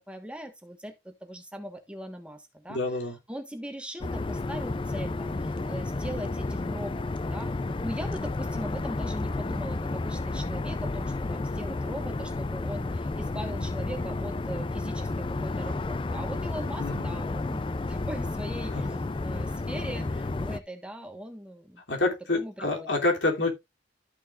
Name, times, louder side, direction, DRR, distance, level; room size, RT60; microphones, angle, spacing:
voice 1, 0.0-7.6 7.8-17.6 17.9-21.8 22.3-23.0, equal, 5° right, 1.3 m, -40 dB
voice 2, 2.7-3.2 16.8-17.2 21.9-23.5, left 2 dB, 80° left, 3.0 m, -27 dB
sound 1, 4.0-20.6, left 2 dB, 30° left, 0.4 m, -31 dB
13.0 x 6.5 x 2.5 m
head